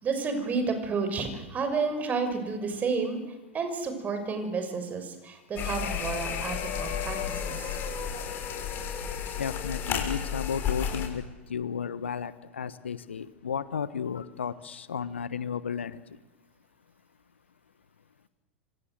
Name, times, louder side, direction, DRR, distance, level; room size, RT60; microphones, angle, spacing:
voice 1, 0.0-3.2 3.5-7.8, right 4 dB, 25° right, 7 dB, 6.4 m, -31 dB
sound 1, 5.6-11.1, left 8 dB, 35° left, 6.3 m, -32 dB
voice 2, 9.4-11.2 11.5-16.0, left 7 dB, 75° left, 15 dB, 1.3 m, -33 dB
27.0 x 26.0 x 8.0 m, 1.1 s
figure-of-eight pair, 90°, 6 cm